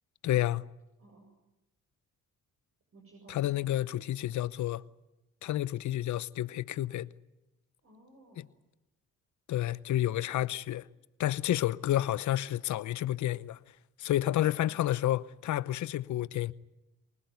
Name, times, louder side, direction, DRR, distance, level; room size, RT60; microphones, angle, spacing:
voice 1, 0.2-0.6 3.3-4.8 5.4-7.1 8.4-8.5 9.5-10.9 11.2-13.6 14.0-16.5, left 13 dB, 70° left, 0.8 m, -30 dB
voice 2, 1.0-1.3 2.9-3.8 7.8-8.5 14.3-14.8, right 2 dB, 45° right, 7.5 m, -56 dB
24.5 x 20.0 x 9.6 m
cardioid pair, 90°, 30 cm